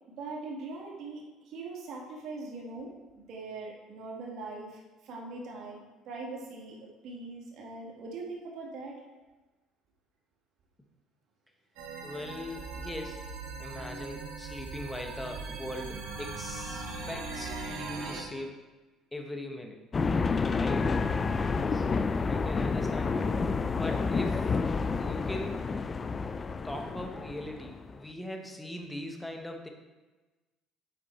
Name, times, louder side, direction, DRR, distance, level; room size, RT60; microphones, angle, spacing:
voice 1, 0.2-9.0, right 3 dB, 65° right, -2 dB, 1.6 m, -41 dB
sound 1, 11.8-18.2, right 3 dB, 90° right, 1.4 m, -39 dB
voice 2, 12.0-13.2 13.6-18.6 19.1-19.8 20.5-20.9 21.7-23.3 23.7-24.6 25.0-25.6 26.6-29.7, left 1 dB, 10° left, 3 dB, 1.0 m, -40 dB
sound 2, 19.9-28.0, left 4 dB, 30° left, 0.3 m, -29 dB
7.8 x 4.3 x 4.1 m, 1.2 s
cardioid pair, 105°, 0 cm